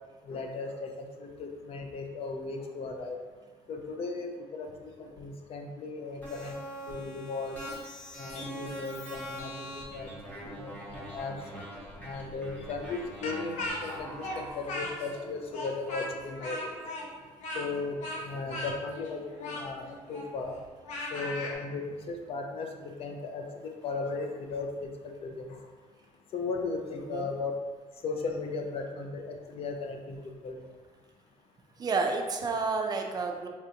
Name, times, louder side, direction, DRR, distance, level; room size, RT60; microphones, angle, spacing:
voice 1, 0.2-3.2 3.7-6.5 6.9-7.6 8.2-11.5 12.0-14.1 14.4-16.8 17.5-20.5 21.1-23.4 23.8-25.6 26.3-27.5 28.0-30.6, left 3 dB, 55° left, 3 dB, 0.4 m, -36 dB
sound 1, 6.2-14.5, equal, 15° left, 0.8 m, -42 dB
Speech, 13.2-15.2 15.5-21.5, left 1 dB, 90° left, 0.7 m, -37 dB
voice 2, 27.0-27.3 31.8-33.5, right 4 dB, 35° right, 3 dB, 0.4 m, -30 dB
4.1 x 2.4 x 2.8 m, 1.4 s
cardioid pair, 130°, 12 cm